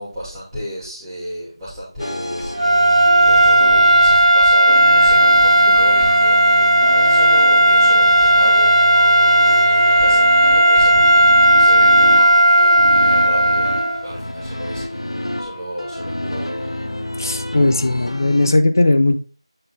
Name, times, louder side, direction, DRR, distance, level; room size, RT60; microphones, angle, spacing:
voice 1, 0.0-2.5 3.3-13.7 14.0-16.8, equal, ahead, -15 dB, 1.9 m, -33 dB
sound 1, 2.0-18.5, left 1 dB, 75° left, 0.8 m, -29 dB
sound 2, 2.5-14.1, right 1 dB, 80° right, 1.0 m, -13 dB
voice 2, 17.2-19.2, left 2 dB, 40° left, 8 dB, 0.6 m, -17 dB
7.7 x 3.8 x 3.5 m, 0.38 s
figure-of-eight pair, 170°, 3 cm